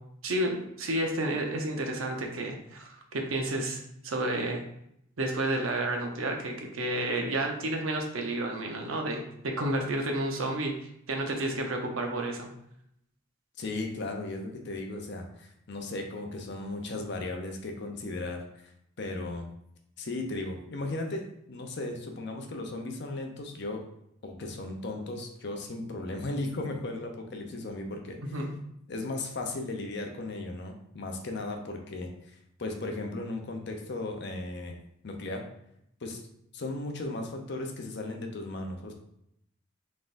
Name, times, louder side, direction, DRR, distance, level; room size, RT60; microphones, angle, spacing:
voice 1, 0.2-4.6 5.2-12.5 28.2-28.5, right 1 dB, 90° right, 2 dB, 0.8 m, -31 dB
voice 2, 13.6-18.5 19.0-19.5 20.0-23.8 24.2-28.2 28.9-34.8 35.0-35.4 36.0-36.2 36.5-38.9, left 2 dB, 60° left, 3 dB, 0.7 m, -36 dB
4.0 x 3.6 x 2.6 m, 0.75 s
head